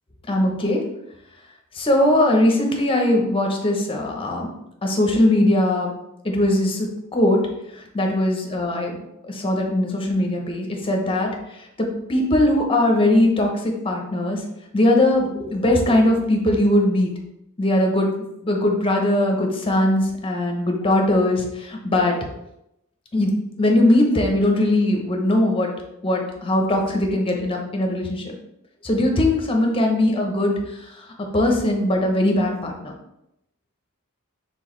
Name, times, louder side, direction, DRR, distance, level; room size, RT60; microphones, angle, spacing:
voice 1, 0.3-0.8 1.7-4.5 4.8-5.9 6.2-7.4 7.9-9.0 9.3-11.3 11.8-14.4 14.7-17.1 17.6-18.1 18.4-22.2 23.1-23.3 23.6-25.7 26.0-28.3 28.8-30.5 31.3-32.9, left 1 dB, 25° left, 2 dB, 0.8 m, -20 dB
4.6 x 3.6 x 3.1 m, 0.83 s
head